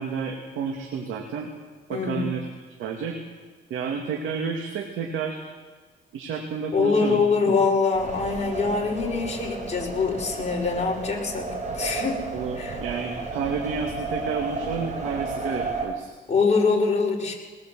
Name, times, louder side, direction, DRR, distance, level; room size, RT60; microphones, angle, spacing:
voice 1, 0.0-1.5 1.9-2.4 2.8-3.2 3.7-5.4 6.1-7.6 12.3-16.1, right 6 dB, 85° right, 2 dB, 2.5 m, -30 dB
voice 2, 1.9-2.4 6.7-11.5 11.7-12.2 12.6-12.8 16.3-17.4, left 4 dB, 35° left, -2 dB, 5.4 m, -24 dB
sound 1, 7.9-15.9, right 3 dB, 35° right, 6.2 m, -33 dB
20.5 x 19.5 x 7.8 m, 1.4 s
cardioid pair, 90°, 20 cm